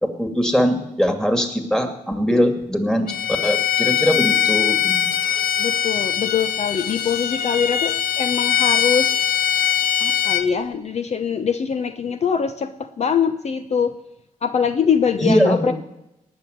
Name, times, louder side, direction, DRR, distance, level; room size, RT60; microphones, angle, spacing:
voice 1, 0.0-3.1 3.4-5.1 15.2-15.7, equal, 5° left, 6 dB, 2.3 m, -21 dB
Bowed string instrument, 3.1-10.5, left 9 dB, 85° left, 0.9 m, -21 dB
voice 2, 5.6-9.1 10.0-12.7 13.0-13.9 14.4-15.7, left 6 dB, 50° left, 9 dB, 0.8 m, -23 dB
18.5 x 6.3 x 9.3 m, 0.87 s
cardioid pair, 80°, 14 cm